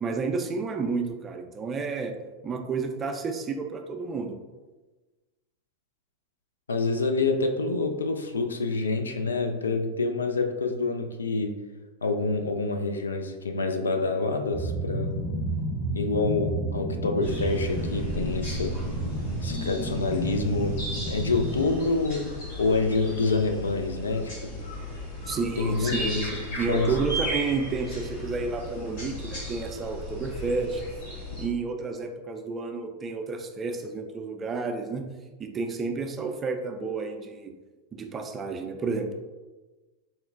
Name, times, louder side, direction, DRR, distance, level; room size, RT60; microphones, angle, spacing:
voice 1, 0.0-2.2 2.4-4.4 25.3-30.8 31.4-35.1 35.4-37.5 37.9-39.1, right 4 dB, 25° right, 5 dB, 0.4 m, -31 dB
voice 2, 6.7-11.5 12.0-15.2 15.9-18.8 19.4-20.8 21.1-24.6 25.6-27.0, left 3 dB, 85° left, 5 dB, 0.3 m, -27 dB
sound 1, 14.5-21.6, right 1 dB, 15° left, 0.7 m, -31 dB
sound 2, 17.2-31.5, left 1 dB, 65° left, 1.4 m, -36 dB
4.1 x 2.1 x 2.4 m, 1.2 s
figure-of-eight pair, 90°, 0 cm